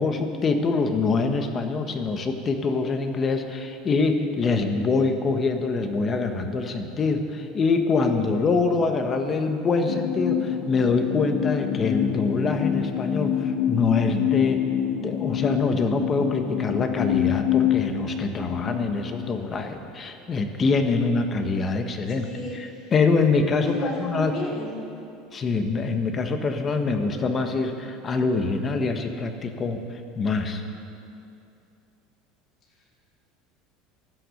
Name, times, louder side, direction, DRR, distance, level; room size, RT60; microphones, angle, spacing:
voice 1, 0.0-14.6 15.0-22.3 22.5-24.3 25.3-30.6, left 4 dB, 25° left, 6 dB, 1.3 m, -25 dB
sound 1, 9.8-19.7, left 10 dB, 65° left, 1.0 m, -26 dB
voice 2, 22.2-22.9 23.6-24.8, left 2 dB, 40° left, -3 dB, 3.8 m, -32 dB
16.0 x 11.5 x 6.4 m, 2.6 s
supercardioid pair, 140°, 0 cm